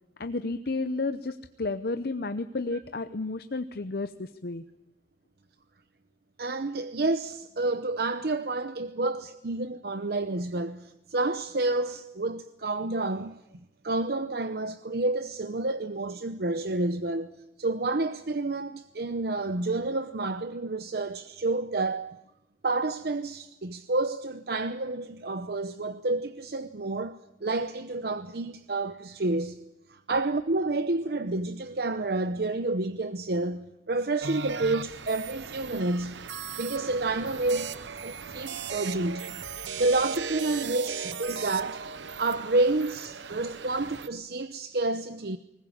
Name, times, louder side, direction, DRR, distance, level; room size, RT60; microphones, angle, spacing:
voice 1, 0.2-4.6, left 3 dB, 55° left, 0.7 m, -32 dB
voice 2, 6.4-13.4 13.8-22.2 22.6-29.6 29.9-36.3 36.6-39.3 39.8-41.8 42.2-45.4, right 2 dB, 60° right, 0.8 m, -29 dB
sound 1, 34.2-44.1, right 5 dB, 90° right, 0.9 m, -38 dB
21.0 x 19.5 x 8.6 m
head